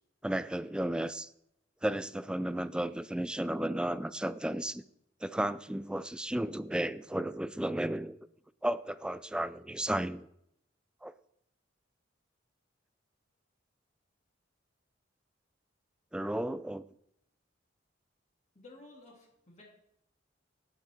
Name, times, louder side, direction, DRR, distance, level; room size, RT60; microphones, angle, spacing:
voice 1, 0.2-1.3 1.8-4.8 5.2-8.2 8.6-10.3 11.0-11.1 16.1-16.9, right 1 dB, 5° right, 15 dB, 0.3 m, -33 dB
voice 2, 18.5-19.6, left 2 dB, 35° left, -2 dB, 2.5 m, -54 dB
17.0 x 6.0 x 4.4 m, 0.76 s
head